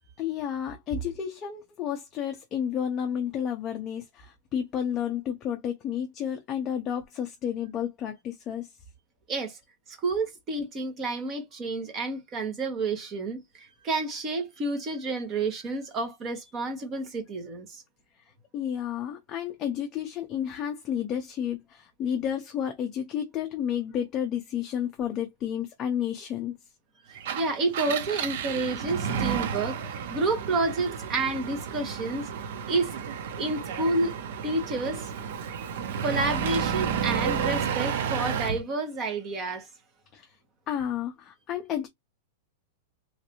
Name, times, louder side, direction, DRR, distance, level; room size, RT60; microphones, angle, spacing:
voice 1, 0.2-8.7 18.5-26.5 40.1-40.2 40.7-41.9, left 9 dB, 20° left, 0.5 m, -31 dB
voice 2, 9.3-9.6 9.9-17.8 27.1-32.3 32.7-32.9 33.3-34.1 34.4-35.1 36.0-39.7, right 3 dB, 20° right, 1.0 m, -30 dB
Engine, 27.1-38.6, right 7 dB, 55° right, 0.6 m, -31 dB
3.1 x 2.6 x 2.9 m
supercardioid pair, 170°, 0 cm